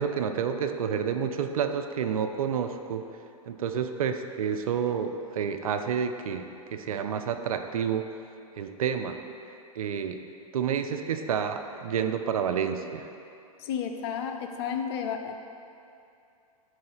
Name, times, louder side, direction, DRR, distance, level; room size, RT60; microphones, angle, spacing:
voice 1, 0.0-3.1 3.5-8.1 8.6-9.2 9.8-10.2 10.5-13.1, right 7 dB, 70° right, 7 dB, 0.4 m, -29 dB
voice 2, 13.6-15.3, left 7 dB, 45° left, 5 dB, 0.5 m, -32 dB
4.8 x 3.8 x 5.7 m, 2.6 s
figure-of-eight pair, 105°, 19 cm